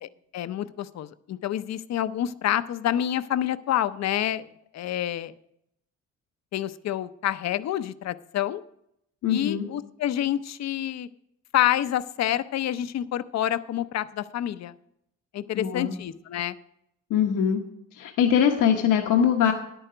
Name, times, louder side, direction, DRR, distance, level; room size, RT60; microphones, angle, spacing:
voice 1, 0.0-5.3 6.5-8.6 9.3-11.1 11.5-14.8 15.3-16.6, left 12 dB, 60° left, 13 dB, 0.6 m, -28 dB
voice 2, 9.2-9.7 15.5-15.9 17.1-17.6 17.9-19.5, left 8 dB, 80° left, 3 dB, 1.0 m, -22 dB
10.0 x 9.0 x 4.9 m, 0.76 s
cardioid pair, 90°, 30 cm